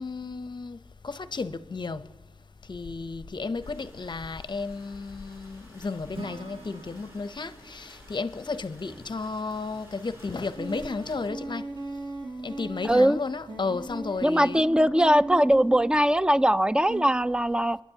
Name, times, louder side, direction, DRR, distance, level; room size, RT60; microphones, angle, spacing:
voice 1, 0.0-2.0 2.7-11.7 12.4-14.6, left 4 dB, 45° left, 0.6 m, -33 dB
sound 1, 3.6-11.3, equal, 25° right, 3.0 m, -53 dB
Acoustic guitar / Strum, 6.1-10.2, right 4 dB, 60° right, 0.9 m, -49 dB
sound 2, 10.6-13.0 13.5-16.0 16.9-17.1, right 2 dB, 45° right, 2.9 m, -37 dB
voice 2, 12.8-13.2 14.2-17.8, equal, 10° right, 0.3 m, -21 dB
29.0 x 10.5 x 2.8 m
cardioid pair, 45°, 11 cm